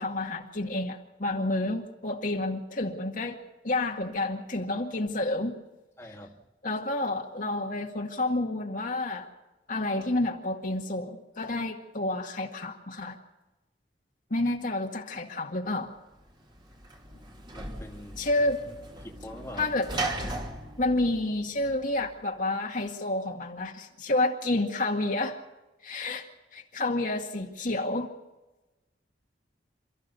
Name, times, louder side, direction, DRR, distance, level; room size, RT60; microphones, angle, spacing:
voice 1, 0.0-5.6 6.6-9.3 9.7-13.2 14.3-15.9 18.2-18.6 19.6-19.9 20.8-25.4 25.8-28.1, left 2 dB, 50° left, 1 dB, 2.0 m, -29 dB
voice 2, 6.0-6.4 17.5-18.3 19.0-19.8, left 1 dB, 15° left, 0 dB, 2.3 m, -43 dB
Sliding door / Slam, 16.2-22.1, right 2 dB, 25° right, 2.9 m, -38 dB
28.5 x 14.5 x 6.9 m, 1.1 s
head